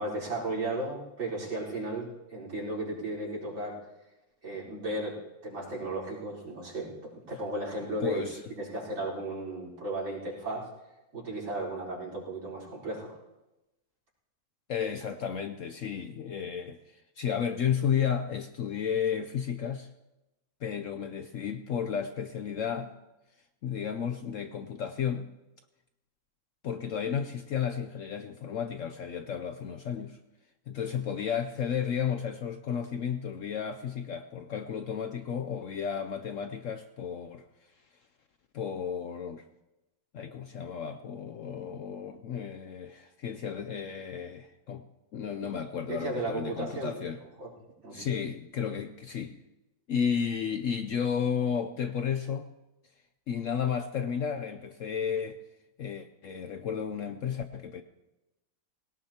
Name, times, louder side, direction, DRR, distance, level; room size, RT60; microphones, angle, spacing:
voice 1, 0.0-3.8 4.4-8.2 8.6-10.7 11.1-13.2 45.9-47.0 47.4-47.5 47.8-48.1, right 2 dB, 80° right, -4 dB, 5.3 m, -35 dB
voice 2, 8.0-8.4 14.7-19.9 20.6-22.9 23.6-25.3 26.6-30.2 30.7-37.4 38.5-39.5 40.1-44.8 45.1-47.2 47.9-49.4 49.9-52.5 53.3-55.4 55.8-57.8, left 7 dB, 80° left, 8 dB, 0.7 m, -33 dB
20.5 x 18.0 x 2.9 m, 0.99 s
omnidirectional pair, 2.1 m